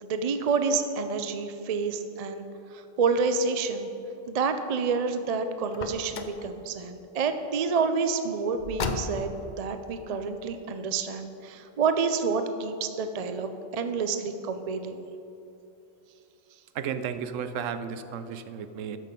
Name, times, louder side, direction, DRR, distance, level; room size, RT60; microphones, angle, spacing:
voice 1, 0.0-2.4 2.7-3.9 4.3-9.3 9.6-15.0, right 5 dB, 55° right, 8 dB, 0.4 m, -28 dB
Car, 5.7-6.5 8.6-9.5, left 4 dB, 45° left, 0.7 m, -34 dB
voice 2, 16.7-19.0, right 7 dB, 85° right, 11 dB, 1.0 m, -33 dB
13.0 x 6.3 x 5.2 m, 2.9 s
omnidirectional pair, 1.3 m